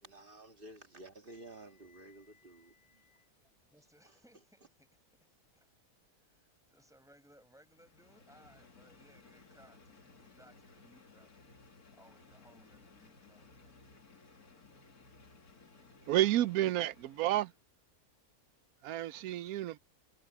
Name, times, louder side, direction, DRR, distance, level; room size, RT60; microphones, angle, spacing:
voice 1, 0.0-3.3 4.0-4.2, right 1 dB, 35° right, 1.9 m, -53 dB
voice 2, 3.4-5.7 6.1-11.3 11.9-14.0, equal, ahead, 5.1 m, -64 dB
sound 1, 7.6-17.7, left 4 dB, 75° left, 2.8 m, -60 dB
voice 3, 16.1-17.5 18.8-19.8, right 13 dB, 75° right, 1.0 m, -30 dB
omnidirectional pair, 1.6 m